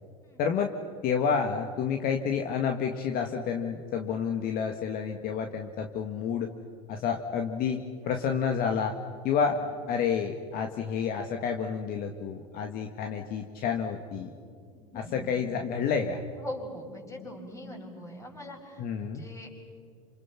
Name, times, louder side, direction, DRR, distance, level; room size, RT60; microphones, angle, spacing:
voice 1, 0.4-0.7 1.0-6.5 6.9-9.0 9.2-9.6 9.9-14.3 15.1-16.2 18.8-19.2, left 6 dB, 50° left, 4 dB, 1.8 m, -29 dB
voice 2, 14.7-15.4 16.3-19.7, left 1 dB, 15° left, 1 dB, 6.5 m, -43 dB
28.5 x 27.5 x 5.9 m, 2.3 s
hypercardioid pair, 95°, 19 cm